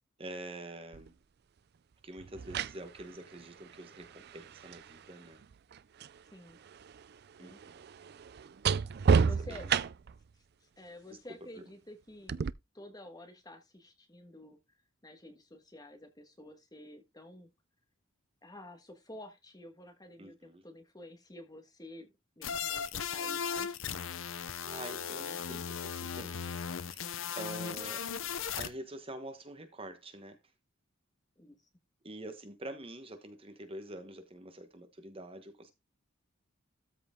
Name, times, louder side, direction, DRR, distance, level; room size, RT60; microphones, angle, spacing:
voice 1, 0.2-1.1 2.0-5.4 7.4-7.8 9.1-9.7 11.1-11.2 11.5-11.6 20.2-20.6 24.3-26.6 26.9-28.1 28.6-30.4 32.0-35.7, right 1 dB, 25° right, 1.2 m, -46 dB
sound 1, 0.9-1.1 2.2-6.2 6.5-10.2 12.3-12.5, right 6 dB, 50° right, 0.4 m, -32 dB
voice 2, 9.1-9.8 10.3-12.4 12.7-14.6 15.0-17.5 18.4-22.1 22.4-23.8 31.4-31.6, left 1 dB, 20° left, 1.5 m, -50 dB
sound 2, 22.4-28.7, left 7 dB, 70° left, 0.7 m, -37 dB
13.0 x 4.9 x 3.7 m
head